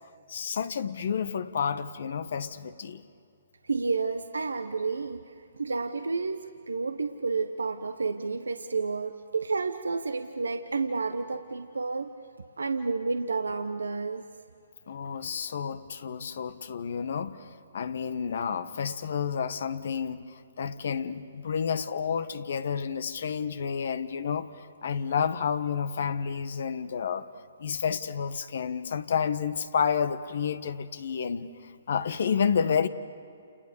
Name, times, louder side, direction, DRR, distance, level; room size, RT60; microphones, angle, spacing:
voice 1, 0.3-3.0 14.9-27.3 27.6-32.9, left 7 dB, 65° left, 1.2 m, -30 dB
voice 2, 3.6-12.1 12.6-14.3 16.2-16.3, right 4 dB, 90° right, 1.0 m, -30 dB
29.5 x 29.0 x 7.0 m
hypercardioid pair, 140°, 0 cm